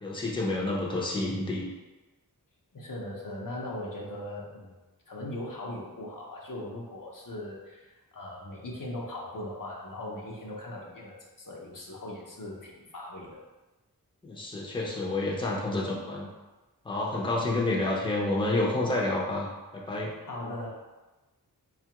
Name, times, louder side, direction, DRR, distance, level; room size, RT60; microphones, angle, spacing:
voice 1, 0.0-1.7 14.2-16.3 16.8-20.1, left 2 dB, 15° left, -3 dB, 0.7 m, -29 dB
voice 2, 2.7-4.8 5.1-13.4 20.3-20.7, left 1 dB, 60° left, -3 dB, 0.8 m, -39 dB
4.0 x 2.4 x 2.9 m, 1.2 s
wide cardioid pair, 55°, 37 cm